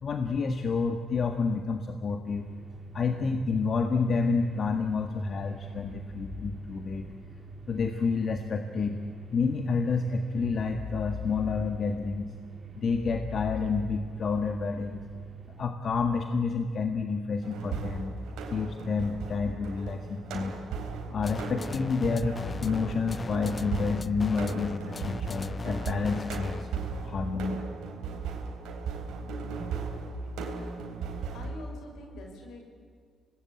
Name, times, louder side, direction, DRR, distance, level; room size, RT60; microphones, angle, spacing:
voice 1, 0.0-2.5 2.9-7.1 7.7-9.0 9.3-12.3 12.7-15.0 15.6-18.1 18.5-20.6 21.1-26.7 27.0-27.6, left 4 dB, 55° left, 5 dB, 1.7 m, -29 dB
sound 1, 2.2-15.7, right 4 dB, 45° right, 2.9 m, -44 dB
sound 2, 17.4-31.5, right 4 dB, 85° right, 3.7 m, -36 dB
sound 3, 21.2-26.8, left 4 dB, 35° left, 0.6 m, -38 dB
voice 2, 31.3-32.6, left 2 dB, 80° left, 2 dB, 6.1 m, -45 dB
26.0 x 20.0 x 8.8 m, 2.2 s
cardioid pair, 70°, 0 cm